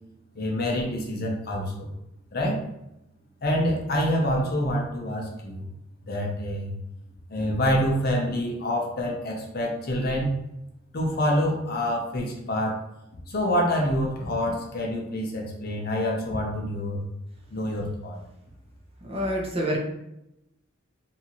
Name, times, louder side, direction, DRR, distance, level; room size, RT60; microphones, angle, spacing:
voice 1, 0.3-1.9 2.3-2.6 3.4-5.7 6.1-6.7 7.3-10.3 10.9-12.8 13.3-17.0 17.5-18.2, equal, 50° left, 0 dB, 0.6 m, -26 dB
voice 2, 19.0-19.8, equal, 30° right, -2 dB, 0.6 m, -27 dB
2.7 x 2.4 x 2.8 m, 0.86 s
head